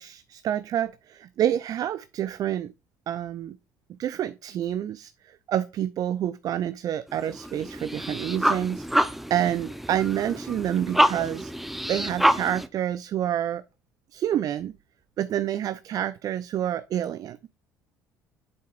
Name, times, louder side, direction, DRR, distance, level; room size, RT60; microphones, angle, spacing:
voice 1, 0.0-2.7 3.1-3.6 4.0-11.5 11.8-13.6 14.1-14.7 15.2-17.5, right 11 dB, 45° right, 0.4 m, -28 dB
sound 1, 7.1-12.7, equal, ahead, 0.7 m, -27 dB
8.0 x 6.4 x 2.4 m
figure-of-eight pair, 55°, 9 cm